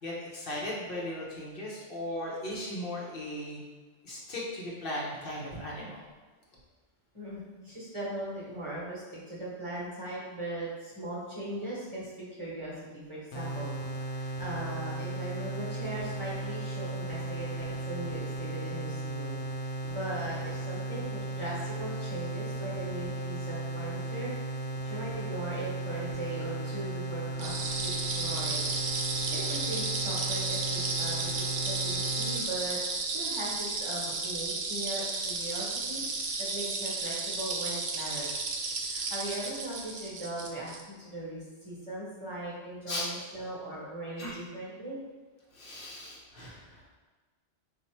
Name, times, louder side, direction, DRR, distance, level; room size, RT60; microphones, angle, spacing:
voice 1, 0.0-3.6 4.0-6.0 42.9-43.1 44.2-44.3 45.6-46.6, left 1 dB, 55° left, -5 dB, 1.0 m, -37 dB
voice 2, 7.1-24.5 24.8-28.7 29.2-32.8 33.1-36.0 36.4-38.4 38.8-45.0, right 1 dB, 25° right, -7 dB, 1.0 m, -39 dB
sound 1, 13.3-32.4, right 2 dB, 85° left, 1.1 m, -36 dB
sound 2, 27.4-40.8, right 3 dB, 55° right, 0.6 m, -33 dB
4.1 x 2.6 x 4.4 m, 1.3 s
omnidirectional pair, 1.2 m